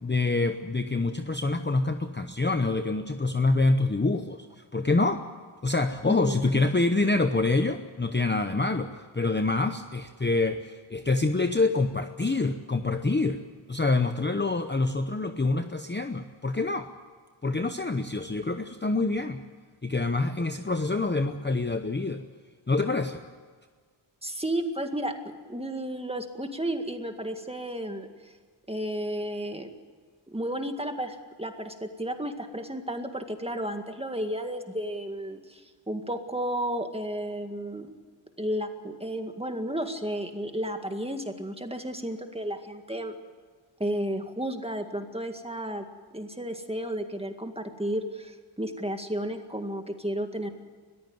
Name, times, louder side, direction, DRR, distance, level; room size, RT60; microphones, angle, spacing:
voice 1, 0.0-5.2 5.6-13.4 13.7-16.9 17.4-19.4 19.8-22.2 22.7-23.2, left 3 dB, 20° left, 7 dB, 0.9 m, -26 dB
voice 2, 6.0-6.6 24.2-28.3 28.7-29.7 30.3-37.9 38.4-43.2 43.8-45.9 46.1-50.5, right 1 dB, 10° right, 6 dB, 1.9 m, -33 dB
21.5 x 14.5 x 9.4 m, 1.5 s
wide cardioid pair, 100°, 50 cm